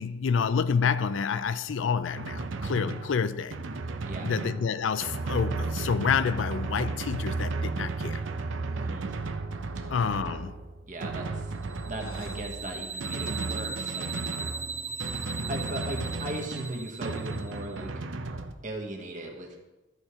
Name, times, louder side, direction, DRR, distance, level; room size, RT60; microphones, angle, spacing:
voice 1, 0.0-3.6 4.2-8.2 9.9-10.5, left 6 dB, 75° left, 0.4 m, -28 dB
Drum, 2.1-18.5, right 3 dB, 80° right, 0.6 m, -34 dB
voice 2, 4.0-4.4 8.8-9.1 9.8-9.9 10.9-11.5 11.8-14.1 15.5-17.9 18.6-19.6, right 1 dB, 40° right, 1.3 m, -37 dB
sound 1, 11.7-17.6, right 5 dB, 10° right, 0.5 m, -38 dB
13.0 x 4.4 x 4.9 m
head